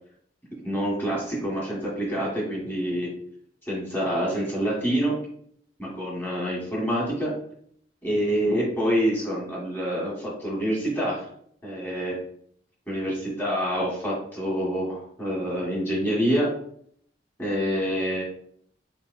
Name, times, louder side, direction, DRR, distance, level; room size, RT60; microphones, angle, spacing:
voice 1, 0.6-3.1 3.6-5.1 5.8-7.3 8.0-11.3 11.6-12.2 12.9-16.5 17.4-18.2, equal, 10° left, -6 dB, 1.7 m, -26 dB
4.3 x 3.4 x 2.6 m, 0.63 s
head